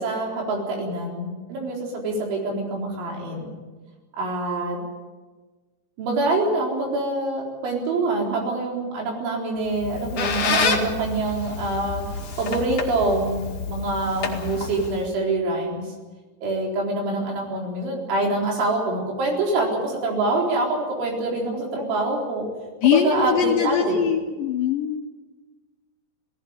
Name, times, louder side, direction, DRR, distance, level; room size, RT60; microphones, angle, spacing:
voice 1, 0.0-3.5 4.2-4.8 6.0-12.0 12.4-15.8 16.4-22.5 22.8-24.0, right 2 dB, 85° right, 0 dB, 6.5 m, -25 dB
Squeak, 9.7-15.1, left 5 dB, 40° left, 2.4 m, -28 dB
voice 2, 22.8-25.0, left 8 dB, 75° left, 4 dB, 2.1 m, -22 dB
19.0 x 16.0 x 9.7 m, 1.3 s
omnidirectional pair, 5.2 m